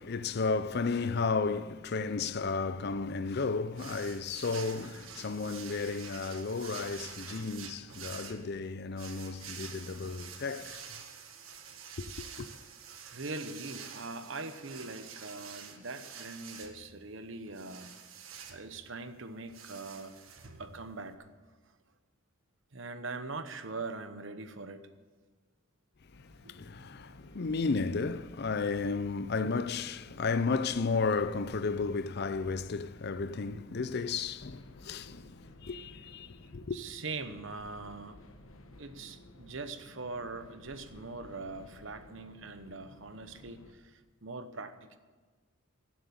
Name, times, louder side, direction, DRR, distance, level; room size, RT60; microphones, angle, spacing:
voice 1, 0.0-10.8 12.0-12.5 26.5-35.4 35.6-36.8, left 4 dB, 50° left, 0.5 m, -33 dB
sound 1, 3.8-21.1, right 7 dB, 85° right, 1.6 m, -48 dB
voice 2, 13.1-18.0 18.5-20.2 20.6-21.3 22.7-24.8 26.4-26.6 33.5-33.6 36.7-38.2 38.8-45.0, right 3 dB, 65° right, 1.0 m, -42 dB
sound 2, 26.1-43.7, left 1 dB, 80° left, 1.2 m, -55 dB
16.5 x 7.5 x 8.6 m
head